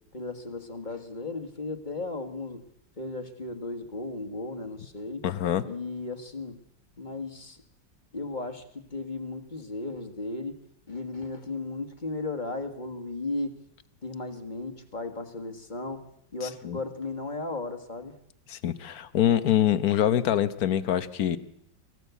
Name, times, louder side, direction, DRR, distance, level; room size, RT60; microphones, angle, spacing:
voice 1, 0.1-2.6 3.0-5.2 5.6-6.6 7.0-7.6 8.1-10.5 10.9-13.6 14.0-18.2, left 3 dB, 25° left, 6 dB, 1.6 m, -35 dB
voice 2, 5.2-5.6 16.4-16.8 18.5-21.4, left 11 dB, 60° left, 13 dB, 1.3 m, -25 dB
24.0 x 15.5 x 8.2 m, 0.79 s
omnidirectional pair, 2.0 m